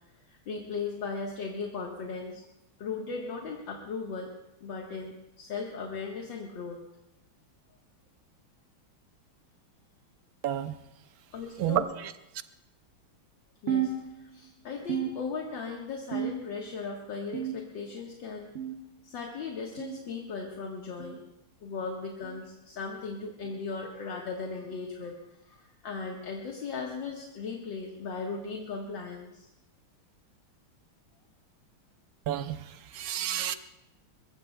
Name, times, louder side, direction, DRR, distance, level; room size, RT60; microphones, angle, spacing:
voice 1, 0.3-2.4 2.8-4.3 4.6-6.8 11.3-11.9 13.6-13.9 14.2-18.5 19.0-21.2 21.6-25.1 25.5-29.5, left 4 dB, 65° left, -1 dB, 2.2 m, -37 dB
voice 2, 10.4-10.7 11.6-12.1 32.3-33.5, right 10 dB, 60° right, 10 dB, 1.0 m, -30 dB
sound 1, 13.7-14.5 14.9-15.7 16.1-16.7 17.3-17.9 18.5-18.9 19.8-20.0 21.0-21.2 22.2-22.4 23.4-23.6 24.6-24.8 25.9-26.0 27.1-27.2 28.3-28.4, right 8 dB, 40° right, 1.0 m, -34 dB
23.0 x 22.0 x 2.3 m, 0.88 s
omnidirectional pair, 2.2 m